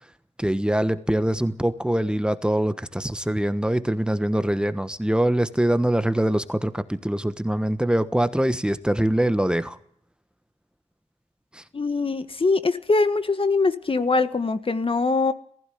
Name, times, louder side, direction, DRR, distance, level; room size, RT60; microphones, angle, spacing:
voice 1, 0.4-9.8 11.5-11.6, right 1 dB, 5° right, 1.2 m, -23 dB
voice 2, 11.7-15.3, left 3 dB, 50° left, 1.6 m, -22 dB
19.0 x 15.5 x 9.3 m
cardioid pair, 55°, 12 cm